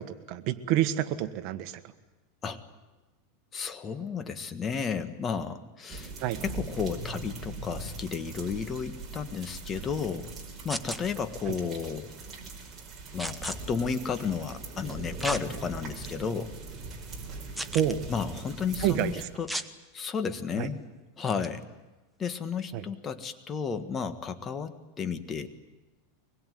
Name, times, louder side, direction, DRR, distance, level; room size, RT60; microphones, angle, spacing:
voice 1, 0.3-1.7 6.2-6.4 11.5-11.6 17.7-18.0 18.8-19.3 20.6-20.7 22.7-22.8, right 11 dB, 50° right, 10 dB, 1.5 m, -28 dB
voice 2, 3.5-6.1 6.4-10.3 10.6-12.1 13.1-16.5 18.1-19.5 19.9-20.8 21.2-21.6 22.2-25.5, left 6 dB, 25° left, 10 dB, 1.7 m, -33 dB
sound 1, 5.9-19.3, right 3 dB, 20° right, 5.0 m, -41 dB
sound 2, 10.7-11.0 13.2-13.6 15.2-15.4 16.0-16.1 17.6-17.9 19.5-19.7 21.3-21.5, right 1 dB, ahead, 1.1 m, -34 dB
24.0 x 21.5 x 9.4 m, 1.1 s
supercardioid pair, 140°, 0 cm